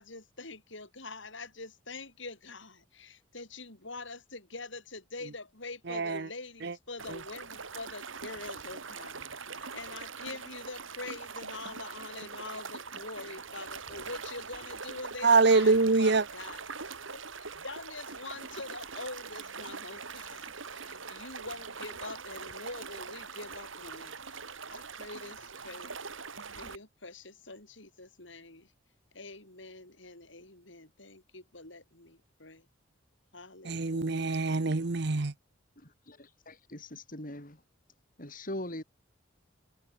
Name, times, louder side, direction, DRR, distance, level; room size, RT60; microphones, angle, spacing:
voice 1, 0.0-9.2 9.5-16.6 17.1-24.4 24.7-25.9 26.5-28.7 29.1-32.6 33.3-34.3, left 3 dB, 65° left, 6.6 m, -45 dB
voice 2, 5.9-6.2 6.6-6.7 15.2-16.2 33.7-35.3, right 3 dB, 55° right, 0.9 m, -24 dB
sound 1, 7.0-26.8, right 5 dB, 80° right, 3.8 m, -43 dB
voice 3, 35.8-37.6 38.2-38.8, left 1 dB, 45° left, 5.7 m, -41 dB
head